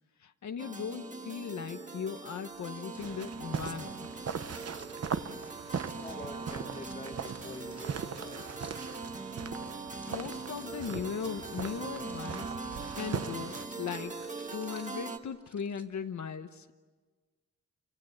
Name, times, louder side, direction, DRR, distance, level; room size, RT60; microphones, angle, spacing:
voice 1, 0.2-4.1 10.1-12.6 12.9-16.8, left 7 dB, 75° left, 6 dB, 1.0 m, -38 dB
sound 1, 0.6-15.2, right 4 dB, 25° right, 1.6 m, -42 dB
sound 2, 2.0-15.8, equal, 5° right, 2.4 m, -58 dB
sound 3, 3.0-13.7, right 6 dB, 60° right, 1.0 m, -40 dB
voice 2, 6.0-8.7, left 3 dB, 25° left, 4 dB, 2.3 m, -46 dB
28.5 x 26.0 x 7.8 m, 1.4 s
wide cardioid pair, 180°, 29 cm